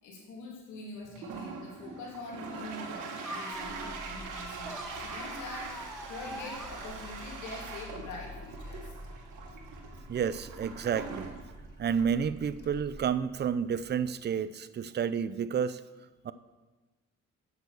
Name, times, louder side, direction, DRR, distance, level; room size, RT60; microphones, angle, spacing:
voice 1, 0.0-8.9, left 2 dB, 80° left, -2 dB, 2.7 m, -44 dB
Toilet flush, 1.0-14.2, right 4 dB, 90° right, 1.4 m, -43 dB
sound 1, 3.2-7.4, equal, ahead, 0.8 m, -45 dB
Car / Engine starting, 3.5-13.6, left 1 dB, 35° left, 1.5 m, -49 dB
voice 2, 10.1-11.3 11.8-15.8 16.2-16.3, right 7 dB, 35° right, 15 dB, 0.5 m, -30 dB
8.2 x 6.3 x 6.9 m, 1.2 s
cardioid pair, 90°, 30 cm